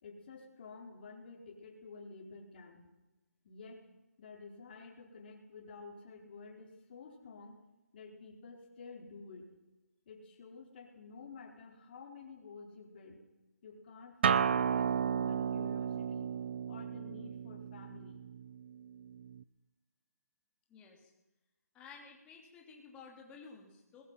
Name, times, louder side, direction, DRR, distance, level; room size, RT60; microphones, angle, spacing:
voice 1, 0.0-2.9 3.4-3.9 4.2-7.6 7.9-9.5 10.1-13.2 13.6-16.3 16.7-18.2, left 4 dB, 35° left, 0 dB, 4.8 m, -51 dB
Acoustic guitar, 14.2-19.4, right 7 dB, 40° right, 0.8 m, -33 dB
voice 2, 20.7-21.1 21.7-24.0, left 5 dB, 10° left, 0 dB, 3.2 m, -53 dB
22.0 x 21.0 x 5.8 m, 0.99 s
hypercardioid pair, 160°, 9 cm